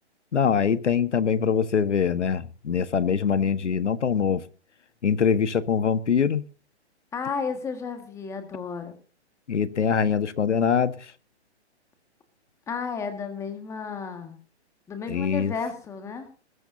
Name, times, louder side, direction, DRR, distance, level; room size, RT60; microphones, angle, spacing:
voice 1, 0.3-4.4 5.0-6.4 9.5-10.9 15.1-15.5, left 7 dB, 90° left, 1.5 m, -23 dB
voice 2, 7.1-9.0 12.7-14.4 14.9-16.3, left 5 dB, 10° left, 1.8 m, -32 dB
21.0 x 12.5 x 2.7 m
hypercardioid pair, 160°, 34 cm